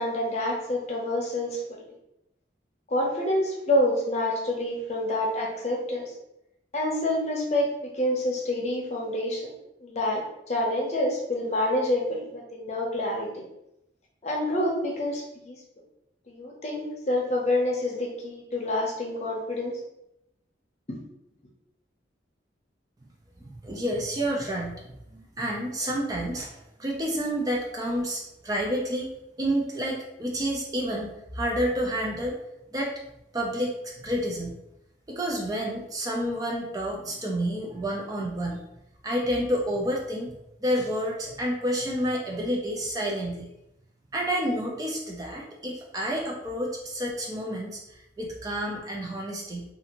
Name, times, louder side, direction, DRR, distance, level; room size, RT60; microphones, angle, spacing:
voice 1, 0.0-1.9 2.9-6.0 6.7-9.5 9.8-10.2 10.5-13.5 14.2-15.6 16.3-19.8, left 1 dB, 40° left, -1 dB, 0.6 m, -27 dB
voice 2, 23.5-24.8 25.1-29.1 29.4-32.4 32.7-32.9 33.3-34.6 35.1-38.6 39.0-40.4 40.6-43.5 44.1-49.6, equal, 20° right, -1 dB, 0.3 m, -29 dB
2.5 x 2.4 x 2.8 m, 0.84 s
head